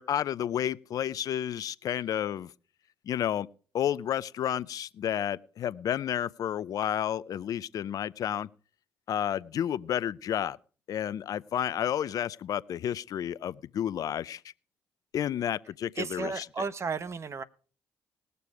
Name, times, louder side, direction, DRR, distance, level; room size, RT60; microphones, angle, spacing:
voice 1, 0.0-2.5 3.1-3.5 3.7-8.5 9.1-10.6 10.9-14.4 15.1-16.4, left 10 dB, 60° left, 0.5 m, -31 dB
voice 2, 16.0-17.4, right 5 dB, 40° right, 1.0 m, -33 dB
19.5 x 6.8 x 4.8 m
hypercardioid pair, 50°, 7 cm